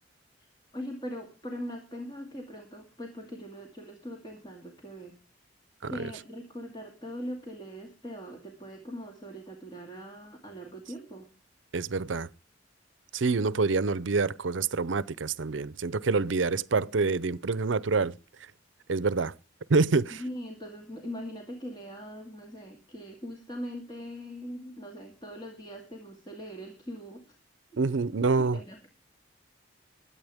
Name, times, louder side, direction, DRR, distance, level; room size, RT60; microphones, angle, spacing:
voice 1, 0.7-5.2 5.9-11.3 20.1-27.4 28.4-28.9, equal, 25° left, 2.4 m, -41 dB
voice 2, 11.7-12.3 13.1-18.1 18.9-19.3 19.7-20.2 27.8-28.6, right 4 dB, 75° right, 0.6 m, -26 dB
22.0 x 8.6 x 3.5 m
head